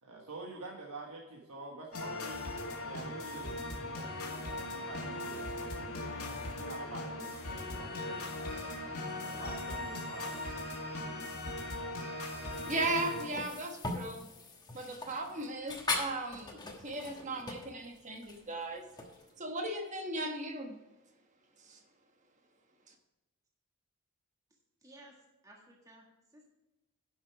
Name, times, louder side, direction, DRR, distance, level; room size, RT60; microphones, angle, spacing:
voice 1, 0.0-2.4 2.8-8.2 9.2-10.4, right 3 dB, 85° right, -2 dB, 1.4 m, -47 dB
sound 1, 1.9-13.2, left 2 dB, 85° left, 2.0 m, -39 dB
sound 2, 12.5-19.3, left 2 dB, 20° left, 1.2 m, -41 dB
voice 2, 12.6-14.3 14.7-16.6 16.8-18.8 19.4-20.7 21.7-21.8, right 2 dB, 35° right, 5 dB, 1.2 m, -37 dB
voice 3, 24.8-25.2 25.4-26.5, right 1 dB, 15° right, -1 dB, 1.6 m, -57 dB
10.5 x 6.2 x 4.7 m, 1.0 s
head